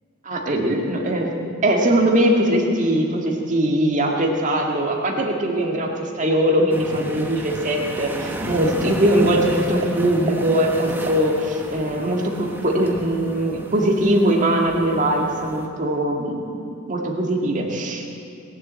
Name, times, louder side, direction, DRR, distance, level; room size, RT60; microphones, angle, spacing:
voice 1, 0.2-16.5 16.9-18.0, right 1 dB, 35° right, 0 dB, 1.9 m, -21 dB
sound 1, 6.7-15.7, equal, 10° right, 1.1 m, -33 dB
20.5 x 7.6 x 8.7 m, 2.5 s
head